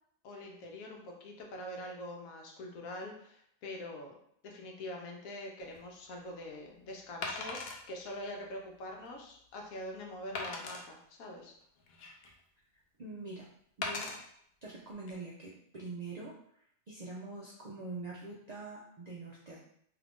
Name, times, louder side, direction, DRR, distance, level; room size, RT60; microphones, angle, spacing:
voice 1, 0.2-4.1 4.4-11.5, left 1 dB, 85° left, 1 dB, 1.1 m, -44 dB
Wood, 5.6-5.8 7.2-7.8 8.4-8.5 9.0-9.1 10.3-10.8 11.6-12.4 13.8-14.2 14.9-15.1, left 3 dB, 60° left, 0.7 m, -39 dB
voice 2, 13.0-13.5 13.8-14.2 14.6-16.4 16.9-19.6, right 3 dB, 70° right, -4 dB, 0.4 m, -44 dB
2.8 x 2.4 x 3.5 m, 0.68 s
omnidirectional pair, 1.4 m